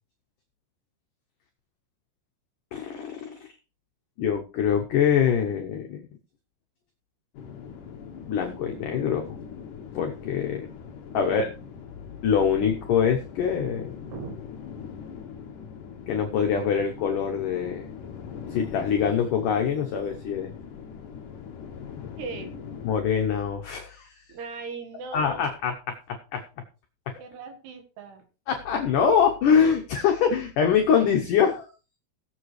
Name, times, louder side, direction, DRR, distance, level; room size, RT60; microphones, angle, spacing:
voice 1, 2.7-3.5 4.2-6.1 8.3-9.4 9.9-10.7 11.1-11.5 12.2-13.9 16.1-17.9 18.5-20.5 22.8-24.1 25.1-26.4 27.1-27.2 28.5-31.7, left 7 dB, 85° left, 4 dB, 1.8 m, -24 dB
sound 1, 7.3-22.9, left 6 dB, 60° left, 2.6 m, -41 dB
voice 2, 11.1-11.5 14.1-14.3 22.2-22.5 24.3-25.5 27.2-28.3, right 4 dB, 70° right, 6 dB, 3.4 m, -38 dB
19.5 x 7.2 x 3.2 m, 0.34 s
omnidirectional pair, 5.2 m